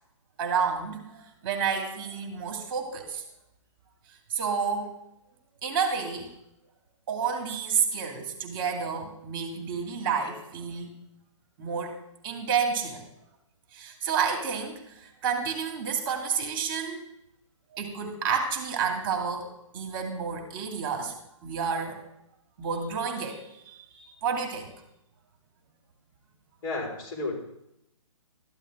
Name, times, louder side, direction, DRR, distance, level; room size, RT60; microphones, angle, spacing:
voice 1, 0.4-3.2 4.3-4.9 5.6-6.3 7.1-10.9 11.6-12.0 12.2-13.0 13.7-17.0 17.7-19.5 19.7-21.1 21.4-22.0 22.6-24.7, right 6 dB, 40° right, 2 dB, 2.4 m, -30 dB
voice 2, 26.6-27.4, left 2 dB, 40° left, -3 dB, 4.5 m, -32 dB
13.5 x 11.5 x 3.7 m, 0.82 s
hypercardioid pair, 150°, 17 cm